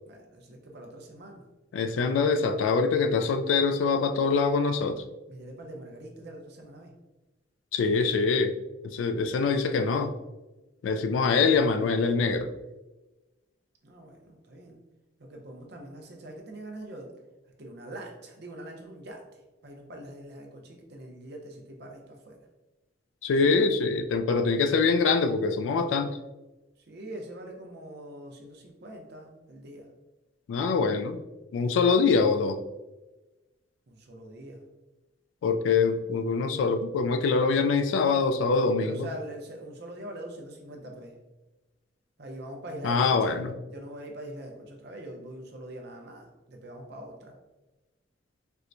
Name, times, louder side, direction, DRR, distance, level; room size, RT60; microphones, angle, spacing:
voice 1, 0.1-1.5 5.3-6.9 13.8-14.8 15.2-17.1 17.6-22.4 26.8-29.9 31.5-31.8 33.9-34.6 38.6-41.2 42.2-43.4 43.7-47.4, right 1 dB, 60° right, 1 dB, 0.6 m, -43 dB
voice 2, 1.7-5.0 7.7-8.5 8.8-10.1 10.8-12.5 23.2-26.2 30.5-31.2 31.5-32.6 35.4-39.1 42.8-43.5, left 4 dB, 85° left, 8 dB, 0.3 m, -24 dB
4.4 x 2.1 x 2.5 m, 1.1 s
head